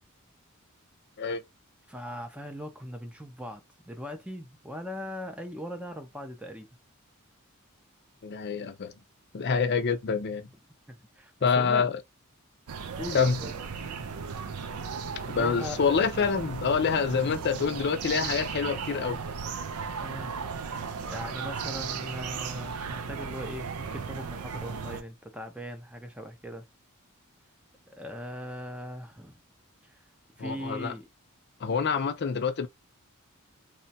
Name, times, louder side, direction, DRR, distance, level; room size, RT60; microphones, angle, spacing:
voice 1, 1.9-6.7 10.9-11.8 13.0-13.5 15.3-15.8 20.0-20.3 21.0-26.7 27.9-29.4 29.9-30.0 30.4-31.1, equal, 5° right, 0.4 m, -39 dB
voice 2, 8.2-8.9 9.3-10.5 11.4-12.0 13.1-13.4 15.3-19.2 30.4-30.9 31.6-32.7, left 5 dB, 50° left, 0.5 m, -26 dB
sound 1, 12.7-25.0, right 6 dB, 90° right, 0.5 m, -36 dB
3.0 x 2.2 x 2.7 m
head